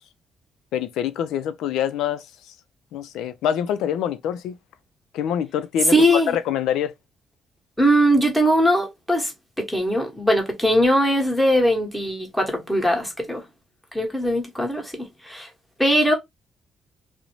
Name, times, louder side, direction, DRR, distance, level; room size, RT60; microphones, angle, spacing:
voice 1, 0.7-2.3 2.9-4.6 5.1-6.9, left 9 dB, 90° left, 0.3 m, -25 dB
voice 2, 5.9-6.4 7.8-9.3 9.6-13.4 13.9-15.5 15.8-16.1, equal, 5° left, 1.0 m, -20 dB
2.5 x 2.0 x 2.9 m
cardioid pair, 90°, 0 cm